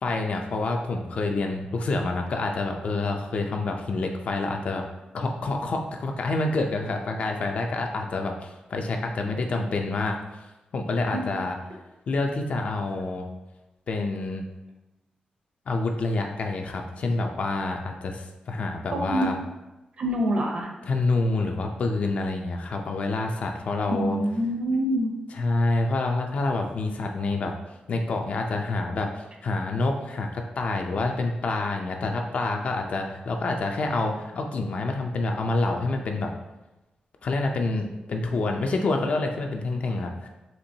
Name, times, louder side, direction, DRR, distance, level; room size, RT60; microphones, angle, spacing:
voice 1, 0.0-4.8 5.1-10.2 10.7-11.6 12.1-13.3 13.9-14.5 15.7-19.3 20.8-24.2 25.3-27.5 27.9-36.3 37.2-40.3, left 3 dB, 55° left, 3 dB, 0.4 m, -27 dB
voice 2, 18.9-19.3 20.0-20.7 24.0-25.1, equal, 45° right, 1 dB, 0.6 m, -25 dB
4.4 x 2.9 x 2.7 m, 1.0 s
wide cardioid pair, 170°, 3 cm